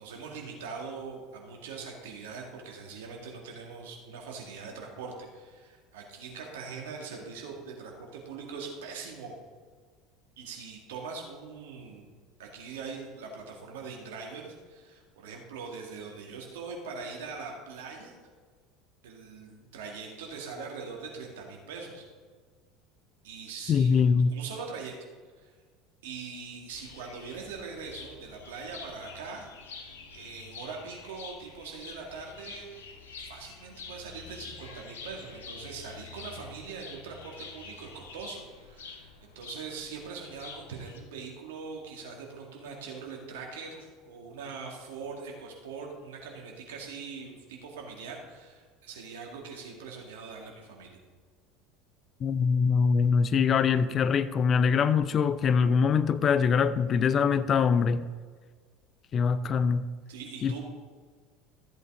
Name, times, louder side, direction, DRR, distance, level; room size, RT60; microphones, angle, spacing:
voice 1, 0.0-9.3 10.4-12.1 12.4-18.2 19.0-22.1 23.2-24.9 25.4-25.5 26.0-29.5 30.1-32.8 33.2-51.0 60.1-60.6, right 5 dB, 70° right, 2.2 m, -42 dB
voice 2, 23.7-24.3 52.2-58.1 59.1-59.8 60.4-60.5, left 6 dB, 35° left, 0.5 m, -23 dB
sound 1, 26.7-41.0, left 5 dB, 70° left, 1.3 m, -47 dB
14.0 x 8.0 x 3.8 m
figure-of-eight pair, 70°, 0 cm